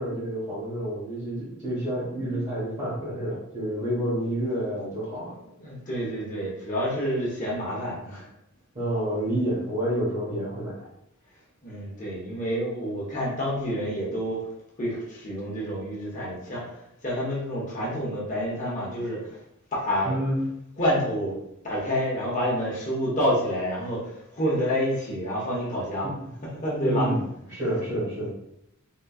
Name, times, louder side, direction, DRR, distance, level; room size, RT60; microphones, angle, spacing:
voice 1, 0.0-5.3 8.7-10.7 20.0-20.4 26.0-26.1 26.8-27.2 27.5-28.3, equal, 35° right, -10 dB, 1.2 m, -29 dB
voice 2, 5.6-8.3 11.6-14.5 14.8-19.4 19.7-20.1 20.8-21.4 21.6-26.1 26.6-27.1 27.6-27.7, equal, 35° left, -5 dB, 1.0 m, -28 dB
3.7 x 3.0 x 2.3 m, 0.80 s
head